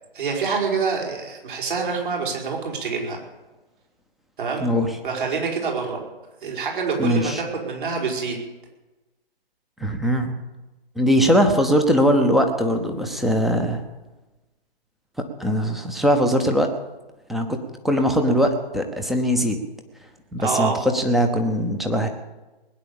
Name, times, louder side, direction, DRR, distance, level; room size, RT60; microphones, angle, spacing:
voice 1, 0.1-3.2 4.4-4.7 5.0-6.0 6.4-8.4 20.4-20.8, right 5 dB, 55° right, 0 dB, 5.3 m, -26 dB
voice 2, 7.0-7.4 9.8-10.3 11.0-13.8 15.4-16.7 17.3-17.6 17.8-19.6 20.3-22.1, equal, ahead, 5 dB, 0.7 m, -20 dB
20.0 x 9.8 x 7.1 m, 1.1 s
figure-of-eight pair, 145°, 30 cm